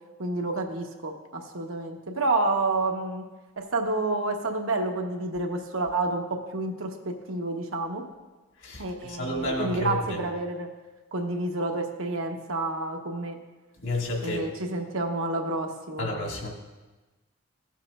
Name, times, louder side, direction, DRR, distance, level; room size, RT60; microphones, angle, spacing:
voice 1, 0.2-3.2 3.6-8.0 8.8-10.7 11.1-13.4 14.2-16.1, right 2 dB, 80° right, 3 dB, 1.1 m, -29 dB
voice 2, 9.2-10.2 13.8-14.4 16.0-16.5, left 1 dB, 65° left, -1 dB, 1.8 m, -30 dB
16.0 x 7.3 x 2.5 m, 1.2 s
head